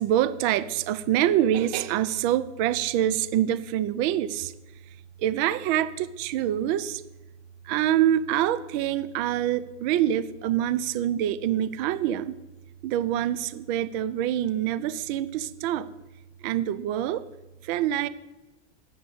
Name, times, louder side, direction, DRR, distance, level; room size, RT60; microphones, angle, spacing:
voice 1, 0.0-4.5 5.2-7.0 7.6-12.4 12.8-15.9 16.4-17.3 17.6-18.1, right 11 dB, 50° right, 15 dB, 0.7 m, -25 dB
7.6 x 6.9 x 8.0 m, 1.1 s
supercardioid pair, 135°, 34 cm